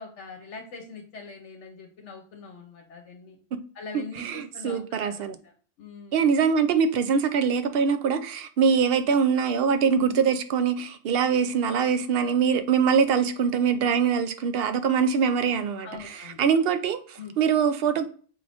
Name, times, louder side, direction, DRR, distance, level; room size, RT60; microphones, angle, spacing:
voice 1, 0.0-3.4 3.7-5.5 5.8-6.3 15.8-16.4 17.2-17.3, left 4 dB, 75° left, 1.0 m, -43 dB
voice 2, 3.9-5.4 6.1-18.0, right 6 dB, 60° right, 0.7 m, -23 dB
4.8 x 2.5 x 3.4 m
omnidirectional pair, 1.3 m